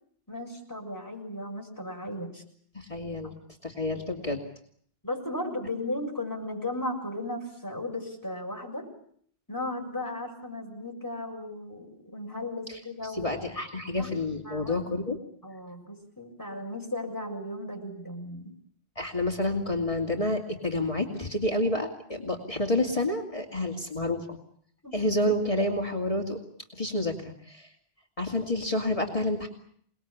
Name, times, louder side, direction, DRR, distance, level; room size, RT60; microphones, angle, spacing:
voice 1, 0.3-2.4 3.2-3.3 5.0-8.9 9.5-13.3 14.0-14.1 14.5-14.8 15.4-18.5 24.8-24.9, left 1 dB, 20° left, 0 dB, 6.8 m, -36 dB
voice 2, 2.7-3.3 3.6-4.4 12.7-15.2 19.0-24.4 24.9-26.4 26.7-27.7 28.2-29.5, left 1 dB, 35° left, 2 dB, 2.8 m, -29 dB
28.5 x 20.0 x 8.6 m, 0.63 s
omnidirectional pair, 1.1 m